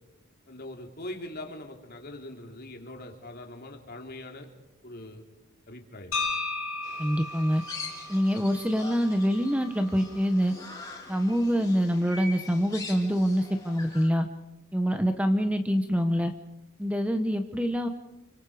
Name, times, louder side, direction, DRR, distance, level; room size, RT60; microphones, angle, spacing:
voice 1, 0.5-4.5 4.8-5.2 5.7-6.3, left 1 dB, 45° left, 3 dB, 3.4 m, -42 dB
sound 1, 6.1-10.2, left 3 dB, 70° left, 4.8 m, -36 dB
sound 2, 6.8-14.1, left 3 dB, 15° left, 5.0 m, -43 dB
voice 2, 7.0-7.6 8.1-10.5 11.1-14.3 14.7-16.3 16.8-17.9, equal, 5° right, 7 dB, 1.1 m, -25 dB
29.5 x 25.0 x 5.0 m, 0.91 s
head